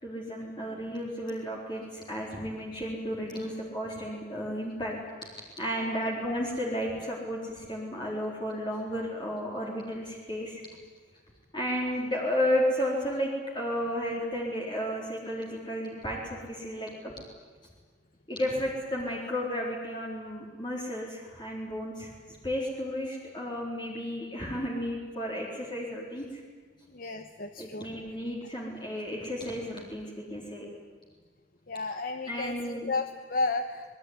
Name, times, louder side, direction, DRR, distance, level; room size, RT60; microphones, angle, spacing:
voice 1, 0.0-5.0 5.2-10.6 11.5-13.3 13.5-17.1 18.3-22.1 22.4-26.4 27.6-30.6 32.3-32.9, equal, 25° left, -3 dB, 4.1 m, -33 dB
voice 2, 26.9-27.9 31.7-33.8, left 3 dB, 50° left, 8 dB, 1.2 m, -33 dB
26.5 x 21.0 x 9.7 m, 1.5 s
head